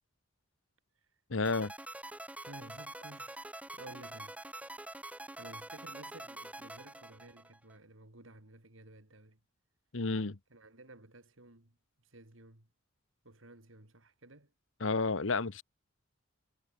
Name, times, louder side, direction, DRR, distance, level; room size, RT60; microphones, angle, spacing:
voice 1, 1.3-1.7 9.9-10.4 14.8-15.6, left 3 dB, 70° left, 1.1 m, -31 dB
sound 1, 1.4-7.7, right 1 dB, 5° right, 1.1 m, -46 dB
voice 2, 2.4-4.4 5.4-9.4 10.5-11.8 12.0-12.7 13.2-14.5, right 2 dB, 75° right, 3.6 m, -54 dB
head